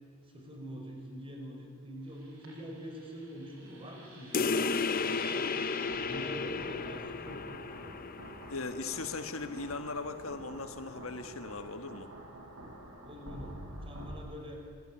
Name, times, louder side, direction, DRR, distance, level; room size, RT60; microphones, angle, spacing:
voice 1, 0.3-5.5 5.9-8.1 13.0-13.6 13.8-14.6, equal, 25° right, 2 dB, 5.4 m, -45 dB
sound 1, 2.0-14.1, right 1 dB, 80° right, 7.1 m, -49 dB
sound 2, 4.3-9.4, left 4 dB, 45° left, 0.8 m, -34 dB
voice 2, 8.5-12.1, left 3 dB, 75° left, 8 dB, 1.4 m, -38 dB
26.5 x 20.5 x 10.0 m, 2.1 s
head